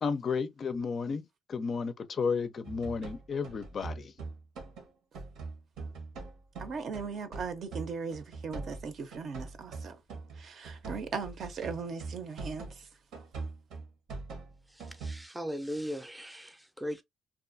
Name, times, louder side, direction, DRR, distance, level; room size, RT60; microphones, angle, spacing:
voice 1, 0.0-4.1, left 5 dB, 50° left, 0.4 m, -33 dB
sound 1, 2.6-4.9 5.1-12.8 13.1-15.2, right 3 dB, 90° right, 0.9 m, -42 dB
voice 2, 6.6-10.0 10.3-12.9, right 5 dB, 60° right, 0.6 m, -38 dB
voice 3, 14.7-17.0, equal, 5° right, 0.5 m, -38 dB
2.5 x 2.3 x 2.4 m
cardioid pair, 95°, 0 cm